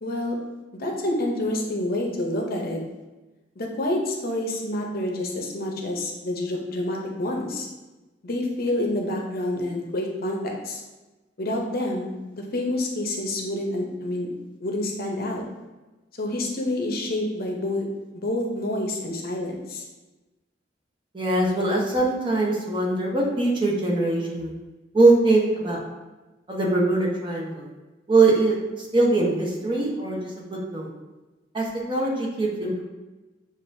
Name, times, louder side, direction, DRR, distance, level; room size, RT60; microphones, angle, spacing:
voice 1, 0.0-0.4 0.7-2.8 3.6-7.7 8.2-10.8 11.4-14.3 14.6-15.4 16.2-17.9 18.1-19.8, left 1 dB, 55° left, 0 dB, 0.7 m, -28 dB
voice 2, 21.1-24.5 24.9-25.8 26.5-27.7 28.1-30.2 30.5-30.9 31.5-32.8, right 2 dB, 25° right, -2 dB, 0.9 m, -22 dB
7.1 x 2.5 x 2.6 m, 1.1 s
head